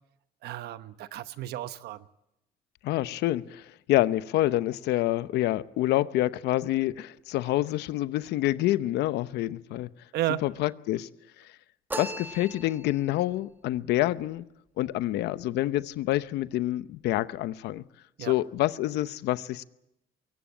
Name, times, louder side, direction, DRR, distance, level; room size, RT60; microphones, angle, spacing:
voice 1, 0.4-2.0 10.1-10.4 18.2-18.3, right 14 dB, 75° right, 1.0 m, -33 dB
voice 2, 2.8-9.9 10.3-11.1 12.0-14.4 14.8-17.8 18.2-19.6, left 15 dB, 80° left, 0.8 m, -27 dB
sound 1, 11.9-13.1, right 1 dB, 10° right, 1.6 m, -37 dB
22.5 x 17.5 x 8.8 m
cardioid pair, 110°, 17 cm